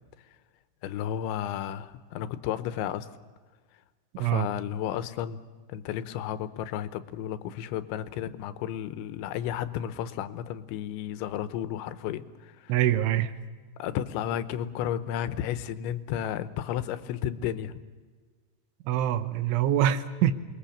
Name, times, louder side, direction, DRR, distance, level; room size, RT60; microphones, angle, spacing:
voice 1, 0.8-3.1 4.2-5.4 5.7-12.8 13.8-17.8, left 10 dB, 80° left, 3.1 m, -33 dB
voice 2, 12.7-13.3 18.9-20.3, right 11 dB, 85° right, 3.5 m, -24 dB
28.0 x 21.5 x 7.2 m
omnidirectional pair, 5.4 m